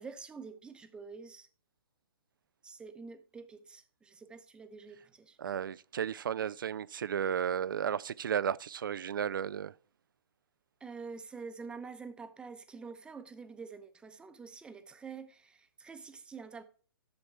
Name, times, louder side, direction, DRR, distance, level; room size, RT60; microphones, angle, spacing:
voice 1, 0.0-1.5 2.6-5.4 10.8-16.6, right 5 dB, 10° right, 0.8 m, -47 dB
voice 2, 5.4-9.7, right 8 dB, 60° right, 0.4 m, -33 dB
11.5 x 7.0 x 3.6 m
figure-of-eight pair, 130°, 12 cm